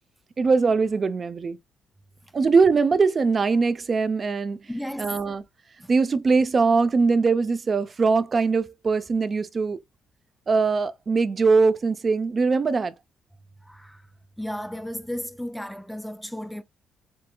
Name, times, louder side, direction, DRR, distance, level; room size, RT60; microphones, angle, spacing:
voice 1, 0.4-1.6 2.3-4.6 5.0-5.4 5.9-9.8 10.5-12.9, right 4 dB, 40° right, 0.6 m, -21 dB
voice 2, 4.7-5.2 5.8-5.9 13.6-14.0 14.4-16.6, equal, ahead, 0.4 m, -34 dB
7.7 x 2.7 x 2.3 m
cardioid pair, 90°, 0 cm